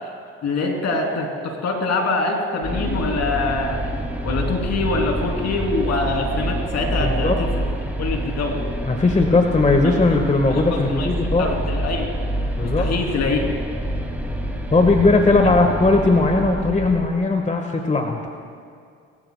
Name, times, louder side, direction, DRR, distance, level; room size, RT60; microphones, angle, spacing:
voice 1, 0.4-3.9 4.2-7.6 8.0-8.6 11.0-12.1 12.8-13.4, left 3 dB, 65° left, 1 dB, 3.3 m, -24 dB
sound 1, 2.6-17.1, right 1 dB, 5° right, 2.5 m, -27 dB
voice 2, 7.0-7.4 8.8-11.5 12.6-12.9 14.7-18.2, left 3 dB, 25° left, 3 dB, 1.5 m, -18 dB
22.5 x 15.0 x 2.3 m, 2.2 s
hypercardioid pair, 55°, 29 cm